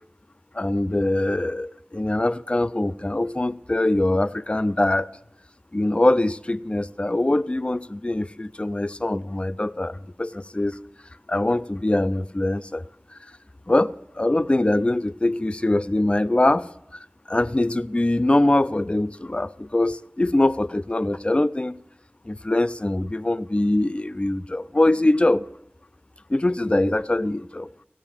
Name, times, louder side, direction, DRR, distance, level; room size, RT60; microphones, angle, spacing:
voice 1, 0.5-5.1 5.7-10.8 11.3-12.8 13.1-13.2 13.7-16.7 17.3-21.8 22.3-25.5 26.3-27.7, left 1 dB, 30° left, 0.4 m, -23 dB
16.5 x 6.3 x 7.2 m
wide cardioid pair, 45°, 4 cm